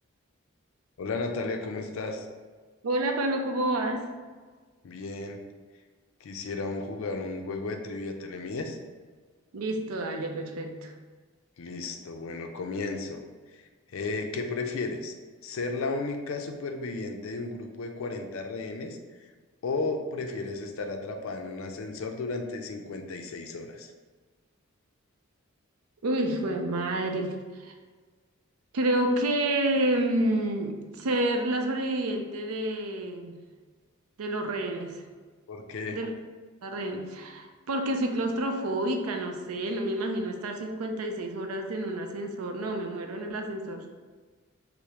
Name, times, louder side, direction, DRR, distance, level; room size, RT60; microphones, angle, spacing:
voice 1, 1.0-2.3 4.8-5.5 6.2-8.8 11.6-13.2 13.5-13.6 13.9-15.1 15.4-19.0 19.6-23.9 35.5-36.0, left 3 dB, 70° left, 5 dB, 0.4 m, -34 dB
voice 2, 2.8-4.1 9.5-10.9 26.0-27.7 28.7-33.4 34.2-35.0 35.9-36.1 36.6-43.9, right 1 dB, 90° right, 4 dB, 0.5 m, -29 dB
4.7 x 2.0 x 2.8 m, 1.4 s
head